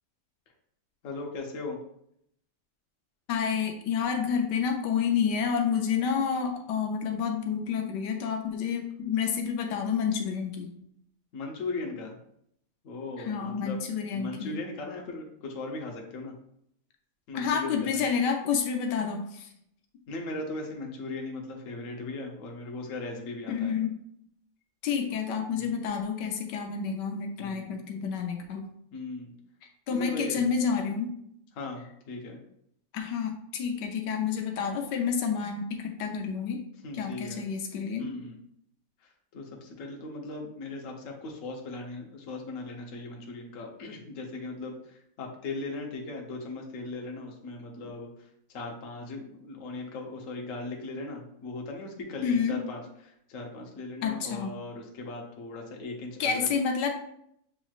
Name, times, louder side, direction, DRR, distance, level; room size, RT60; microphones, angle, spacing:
voice 1, 1.0-1.8 11.3-12.2 12.8-13.8 14.1-16.3 17.3-18.0 20.1-23.7 25.6-25.7 27.4-27.8 28.9-29.3 29.9-30.5 31.5-32.4 36.8-37.4 38.0-38.4 39.3-56.5, left 3 dB, 55° left, 1 dB, 1.1 m, -38 dB
voice 2, 3.3-10.7 13.2-14.5 17.3-19.5 23.5-23.9 24.8-28.6 29.9-31.1 32.9-36.6 36.9-38.1 52.2-52.6 54.0-54.5 56.2-56.9, left 6 dB, 90° left, 3 dB, 1.3 m, -29 dB
7.1 x 3.0 x 2.4 m, 0.72 s
omnidirectional pair, 1.8 m